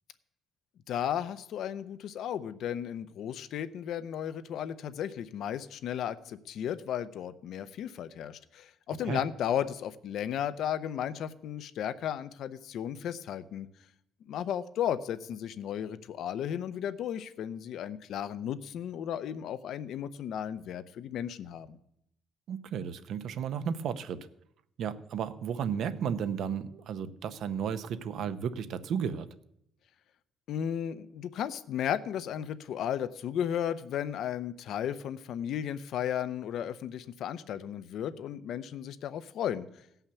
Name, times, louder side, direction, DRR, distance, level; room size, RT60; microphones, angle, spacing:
voice 1, 0.9-13.7 14.3-21.8 30.5-39.7, left 9 dB, 65° left, 14 dB, 0.6 m, -34 dB
voice 2, 22.5-24.3 24.8-29.3, right 7 dB, 65° right, 13 dB, 0.7 m, -33 dB
16.5 x 5.7 x 6.9 m, 0.76 s
cardioid pair, 140°, 0 cm